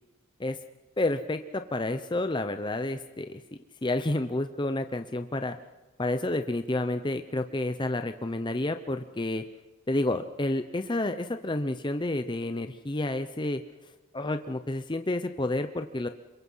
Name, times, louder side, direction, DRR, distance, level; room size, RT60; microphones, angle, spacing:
voice 1, 1.0-3.4 3.8-5.6 6.0-9.4 9.9-13.6 14.1-16.1, left 2 dB, 20° left, 8 dB, 0.7 m, -30 dB
26.5 x 23.0 x 5.6 m, 1.2 s
head